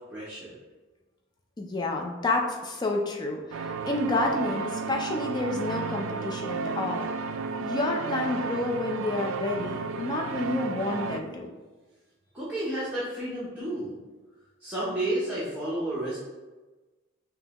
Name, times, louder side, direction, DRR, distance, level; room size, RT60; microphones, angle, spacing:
voice 1, 0.1-0.6 12.3-14.0 14.6-16.2, right 1 dB, 5° right, -10 dB, 0.7 m, -31 dB
voice 2, 1.6-7.1 7.6-11.5, left 2 dB, 20° left, 1 dB, 0.4 m, -29 dB
sound 1, 3.5-11.2, right 4 dB, 90° right, 0.3 m, -33 dB
5.3 x 2.3 x 2.9 m, 1.2 s
head